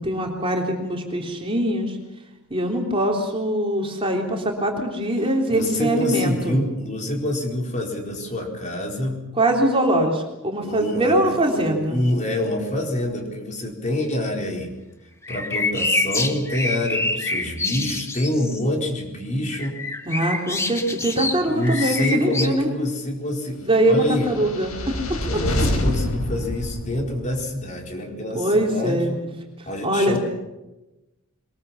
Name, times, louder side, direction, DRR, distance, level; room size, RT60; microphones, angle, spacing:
voice 1, 0.0-2.0 2.5-6.6 9.4-12.0 20.1-22.7 23.6-25.0 28.3-29.3 29.8-30.2, right 1 dB, 25° right, 1 dB, 3.5 m, -22 dB
voice 2, 5.5-9.3 10.6-14.7 15.3-19.8 21.4-24.3 25.2-29.2 29.7-30.2, left 1 dB, 35° left, 1 dB, 4.4 m, -26 dB
sound 1, 15.2-18.6 19.5-22.5, left 2 dB, 15° left, 1.6 m, -27 dB
sound 2, 24.0-27.5, left 1 dB, 90° left, 5.2 m, -27 dB
23.0 x 21.5 x 7.2 m, 1.0 s
head